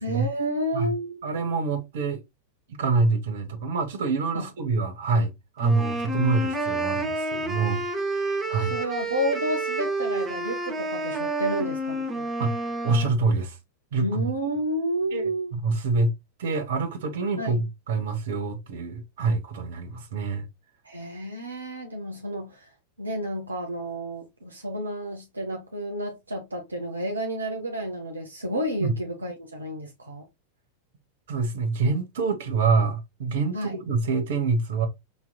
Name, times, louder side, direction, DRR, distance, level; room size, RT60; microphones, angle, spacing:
voice 1, 0.0-1.5 4.3-4.4 8.6-12.3 14.0-15.5 17.4-17.6 20.8-22.7 23.0-30.3 33.5-33.8, equal, 80° right, 0.7 m, -31 dB
voice 2, 1.2-2.2 2.8-5.3 5.6-8.8 12.4-12.5 12.8-13.6 13.9-14.3 15.1-15.3 15.6-16.1 16.4-20.4 28.8-28.9 31.3-34.9, right 4 dB, 55° right, 1.0 m, -26 dB
sound 1, 5.6-13.1, right 2 dB, 15° right, 1.0 m, -29 dB
5.3 x 2.9 x 2.2 m
figure-of-eight pair, 90°, 0 cm